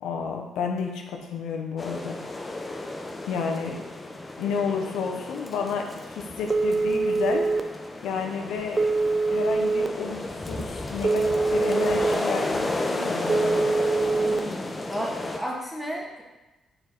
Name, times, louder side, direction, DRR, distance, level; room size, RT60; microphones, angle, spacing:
voice 1, 0.0-2.2 3.2-3.8 4.4-7.5 8.0-8.8 9.3-13.7, left 5 dB, 85° left, 2 dB, 0.9 m, -31 dB
sound 1, 1.8-15.4, left 2 dB, 20° left, 0.7 m, -32 dB
Telephone, 6.5-7.6 8.8-9.9 11.0-12.1 13.3-14.4, right 3 dB, 30° right, 0.5 m, -23 dB
voice 2, 14.1-16.2, equal, 10° right, -3 dB, 1.8 m, -34 dB
7.0 x 4.4 x 4.0 m, 1.1 s
cardioid pair, 90°, 0 cm